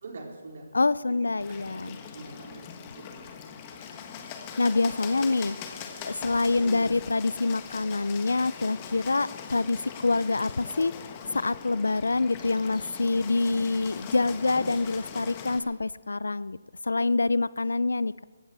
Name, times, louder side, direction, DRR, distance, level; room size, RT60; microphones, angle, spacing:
voice 1, 0.0-0.7 1.1-2.6 2.9-3.3 6.6-6.9, right 3 dB, 55° right, 1 dB, 4.0 m, -43 dB
voice 2, 0.7-2.0 4.6-5.8 6.0-10.9 11.3-16.6 16.8-18.2, left 3 dB, 85° left, 20 dB, 0.5 m, -26 dB
Bird, 1.4-15.6, left 7 dB, 25° left, 1.4 m, -41 dB
16.5 x 16.0 x 4.8 m, 1.4 s
hypercardioid pair, 160°, 0 cm